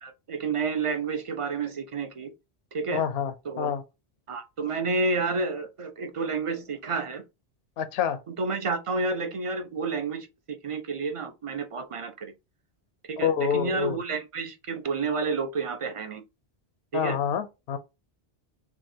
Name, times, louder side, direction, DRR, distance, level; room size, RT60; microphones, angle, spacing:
voice 1, 0.0-2.3 2.7-3.0 3.4-3.7 4.3-7.2 8.4-12.3 13.1-16.2 16.9-17.2, right 4 dB, 35° right, 0.6 m, -30 dB
voice 2, 2.9-3.8 7.8-8.2 13.2-14.0 16.9-17.8, left 8 dB, 70° left, 0.8 m, -27 dB
6.0 x 2.5 x 2.7 m
omnidirectional pair, 1.1 m